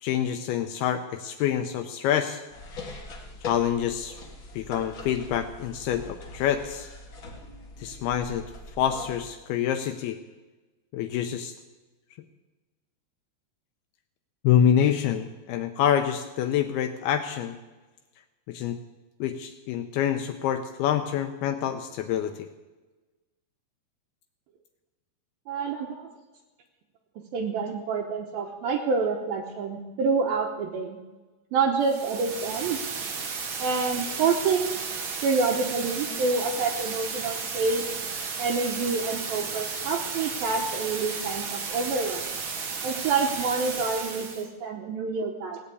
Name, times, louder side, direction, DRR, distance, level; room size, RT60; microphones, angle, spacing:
voice 1, 0.0-2.4 3.4-4.2 4.5-6.9 7.8-8.4 8.8-10.2 10.9-11.5 14.4-17.6 18.5-18.8 19.2-22.5, left 9 dB, 80° left, 7 dB, 2.5 m, -26 dB
sound 1, 2.5-9.3, left 3 dB, 55° left, 1.4 m, -42 dB
voice 2, 25.5-26.1 27.3-31.0 31.5-32.8 33.6-34.7 35.2-37.8 38.4-42.3 42.8-45.6, right 4 dB, 70° right, 0 dB, 2.6 m, -27 dB
sound 2, 31.8-44.5, right 5 dB, 85° right, 1.1 m, -34 dB
17.5 x 8.7 x 8.4 m, 1.2 s
omnidirectional pair, 4.8 m